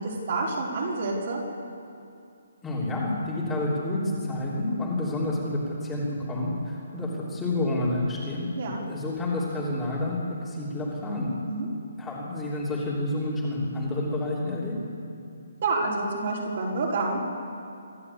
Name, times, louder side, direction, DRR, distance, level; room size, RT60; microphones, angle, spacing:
voice 1, 0.0-1.4 8.6-8.8 11.5-11.7 15.6-17.2, right 3 dB, 40° right, -3 dB, 4.9 m, -28 dB
voice 2, 2.6-8.5 8.9-10.2 10.4-11.3 12.0-14.8, left 1 dB, 5° left, -6 dB, 3.2 m, -29 dB
25.0 x 13.5 x 8.4 m, 2.6 s
hypercardioid pair, 175°, 0 cm